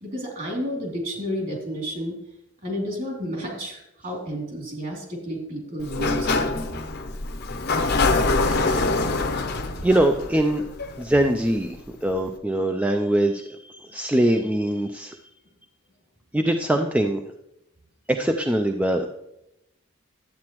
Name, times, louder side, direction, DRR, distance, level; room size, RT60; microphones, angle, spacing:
voice 1, 0.0-2.1 2.6-6.4, equal, 45° right, -1 dB, 2.8 m, -31 dB
Sliding door, 5.8-11.5, left 3 dB, 55° left, 0.8 m, -24 dB
voice 2, 8.5-8.9 9.8-10.6 11.0-15.2 16.3-17.2 18.1-19.1, right 1 dB, 5° right, 4 dB, 0.4 m, -23 dB
11.5 x 8.5 x 3.0 m, 0.84 s
head